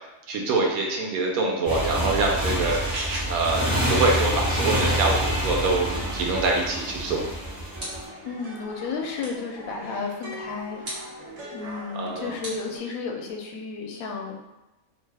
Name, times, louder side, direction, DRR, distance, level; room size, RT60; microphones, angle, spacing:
voice 1, 0.3-2.8 3.3-7.3 11.9-12.3, right 3 dB, 85° right, 0 dB, 1.1 m, -25 dB
Motorcycle, 1.6-8.0, equal, ahead, 0.9 m, -27 dB
sound 1, 2.3-12.8, right 1 dB, 60° right, 1.1 m, -40 dB
sound 2, 7.8-8.3 9.2-9.6 10.8-11.2 12.4-13.3, right 1 dB, 40° right, 1.3 m, -39 dB
voice 2, 8.2-10.8 11.5-14.4, left 4 dB, 80° left, 2 dB, 1.0 m, -33 dB
2.8 x 2.2 x 3.3 m, 1.0 s
omnidirectional pair, 1.5 m